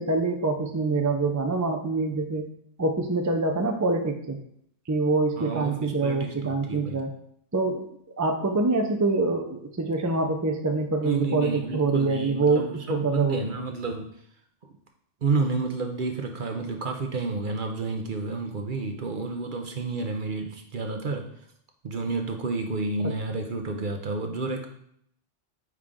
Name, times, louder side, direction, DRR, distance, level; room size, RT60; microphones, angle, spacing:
voice 1, 0.0-2.5 2.8-4.4 4.9-7.1 7.5-7.9 8.2-13.4 23.0-23.1, right 3 dB, 25° right, 4 dB, 0.4 m, -25 dB
voice 2, 5.4-7.0 11.0-14.1 15.2-21.3 21.8-24.7, right 3 dB, 50° right, 4 dB, 0.8 m, -30 dB
8.8 x 3.3 x 3.7 m, 0.69 s
omnidirectional pair, 1.3 m